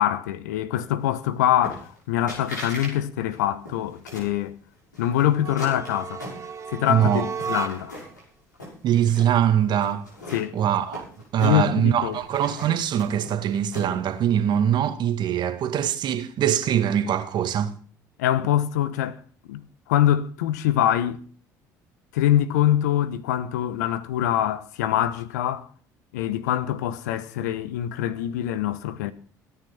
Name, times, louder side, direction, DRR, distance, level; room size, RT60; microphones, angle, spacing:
voice 1, 0.0-4.5 5.0-6.2 6.7-8.0 10.3-10.6 11.4-12.2 18.2-19.2 19.5-19.6 19.9-21.2 22.1-25.7 26.1-29.1, left 11 dB, 75° left, 1.1 m, -24 dB
sound 1, 1.6-2.0 2.3-2.9 3.3-4.4 4.9-6.8 7.2-8.2 8.5-9.3 9.8-11.8 12.1-14.1, left 1 dB, 90° left, 6.4 m, -39 dB
sound 2, 5.3-8.1, right 6 dB, 30° right, 2.1 m, -34 dB
voice 2, 6.9-7.2 8.8-10.1 10.5-11.1 11.3-17.8, right 10 dB, 50° right, 1.8 m, -22 dB
16.5 x 9.6 x 5.9 m
figure-of-eight pair, 60°, 9 cm